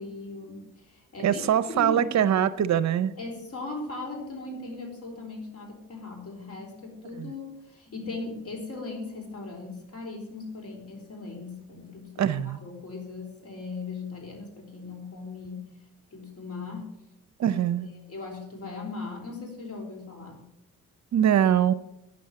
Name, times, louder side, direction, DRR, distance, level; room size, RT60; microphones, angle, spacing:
voice 1, 0.0-1.4 1.7-2.3 3.2-15.7 16.1-17.0 17.5-17.6 18.1-20.4, left 3 dB, 45° left, 1 dB, 4.2 m, -38 dB
voice 2, 1.2-3.1 7.2-7.3 12.2-12.6 17.4-17.9 21.1-21.7, right 9 dB, 55° right, 16 dB, 0.6 m, -23 dB
9.8 x 7.0 x 7.6 m, 0.87 s
cardioid pair, 85°, 34 cm